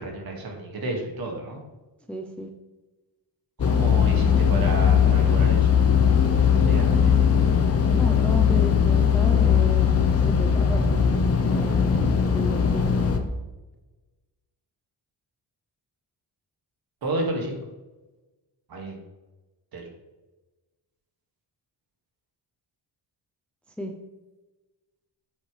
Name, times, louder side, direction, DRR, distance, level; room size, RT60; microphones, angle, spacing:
voice 1, 0.0-1.6 3.6-7.2 17.0-17.5 18.7-19.0 19.7-19.8, right 2 dB, 55° right, 1 dB, 2.1 m, -32 dB
voice 2, 2.1-2.5 7.9-10.9 11.5-12.9 23.8-23.9, left 1 dB, 5° left, 3 dB, 0.6 m, -33 dB
sound 1, 3.6-13.2, left 7 dB, 35° left, 0.8 m, -19 dB
8.1 x 7.6 x 3.3 m, 1.1 s
wide cardioid pair, 160°, 44 cm